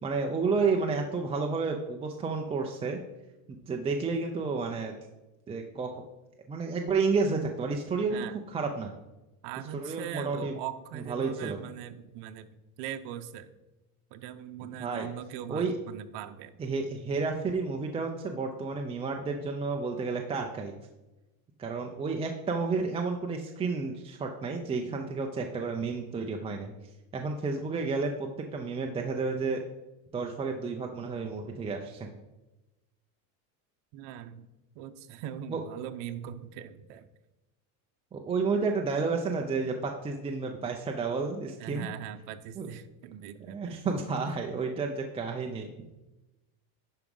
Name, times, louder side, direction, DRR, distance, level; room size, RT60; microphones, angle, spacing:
voice 1, 0.0-3.0 3.6-4.9 5.5-5.9 6.5-8.9 9.7-10.5 10.9-11.6 14.8-15.1 15.5-15.7 16.6-20.7 21.6-26.7 27.1-29.6 30.1-32.1 35.5-35.6 38.1-41.9 42.6-42.7 43.5-45.9, right 4 dB, 15° right, 2 dB, 0.4 m, -31 dB
voice 2, 8.1-8.4 9.4-12.5 12.8-13.5 14.1-16.6 33.9-34.5 34.7-37.0 41.6-44.0, right 10 dB, 65° right, 9 dB, 0.9 m, -41 dB
11.0 x 4.9 x 5.4 m, 1.0 s
cardioid pair, 155°, 44 cm